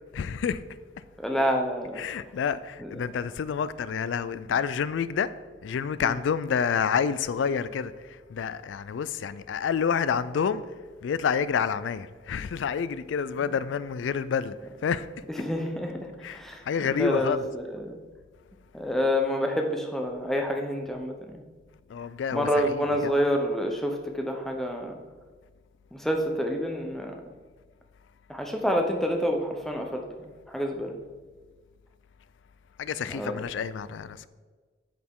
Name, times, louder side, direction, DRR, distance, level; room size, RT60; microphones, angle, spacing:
voice 1, 0.1-0.6 1.0-1.1 1.9-5.3 5.6-10.6 11.0-14.6 14.8-15.1 16.2-17.5 21.9-23.2 32.8-34.3, left 7 dB, 85° left, 0.3 m, -29 dB
voice 2, 1.2-2.0 2.8-2.9 6.0-6.2 15.4-18.0 18.7-21.4 22.3-25.0 25.9-27.2 28.3-30.9 33.1-33.4, equal, ahead, 0.8 m, -28 dB
10.0 x 6.4 x 3.7 m
head